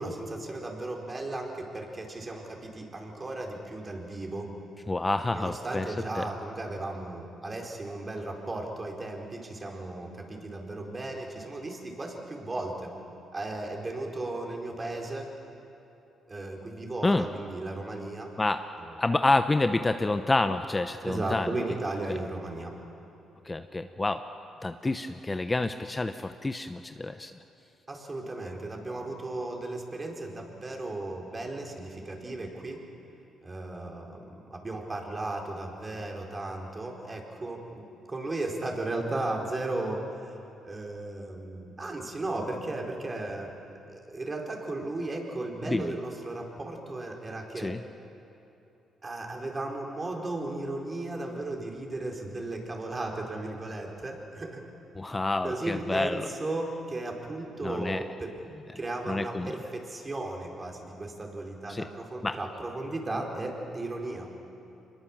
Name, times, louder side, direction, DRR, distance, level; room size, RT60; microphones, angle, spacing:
voice 1, 0.0-4.5 5.3-12.9 13.3-15.3 16.3-18.3 18.8-19.0 21.1-22.7 27.9-32.8 33.4-40.0 40.6-43.5 43.9-47.8 49.0-54.6 55.4-58.3 58.7-64.3, right 2 dB, 30° right, 1 dB, 4.5 m, -35 dB
voice 2, 4.9-5.8 6.2-6.3 17.0-17.3 18.4-18.6 19.0-21.5 22.1-22.2 23.5-24.2 24.6-27.3 45.7-45.9 47.6-47.8 55.0-56.3 57.6-58.0 59.1-59.5 61.7-61.9 62.2-62.4, left 2 dB, 20° left, 9 dB, 0.8 m, -28 dB
24.5 x 21.0 x 7.4 m, 2.9 s
cardioid pair, 75°, 0 cm